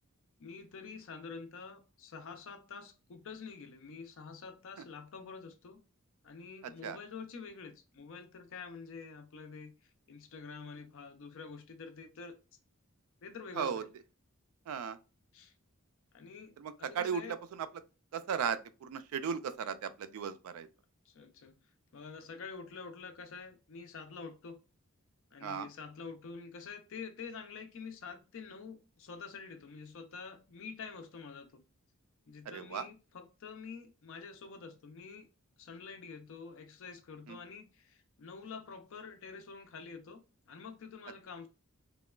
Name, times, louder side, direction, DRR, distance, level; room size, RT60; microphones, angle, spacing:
voice 1, 0.4-5.8 6.2-12.4 13.2-13.9 15.3-15.5 16.1-17.4 21.1-21.5 21.9-24.6 25.3-31.6 32.3-35.3 35.6-41.5, left 5 dB, 65° left, 0.5 m, -47 dB
voice 2, 14.7-15.0 16.6-17.7 18.1-20.7 25.4-25.7 32.5-32.9 37.3-37.4, right 7 dB, 75° right, 0.3 m, -36 dB
2.9 x 2.2 x 2.2 m
head